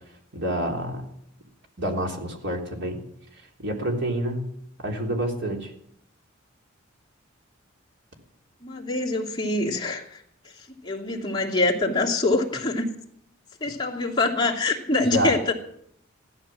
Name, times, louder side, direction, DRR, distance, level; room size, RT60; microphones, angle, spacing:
voice 1, 0.3-1.1 1.8-3.0 3.6-4.5 4.8-5.7 15.1-15.3, right 1 dB, 60° right, 2 dB, 3.4 m, -27 dB
voice 2, 8.6-10.2 10.5-12.9 13.6-15.5, left 2 dB, 20° left, -2 dB, 2.6 m, -25 dB
15.5 x 12.5 x 7.3 m, 0.69 s
head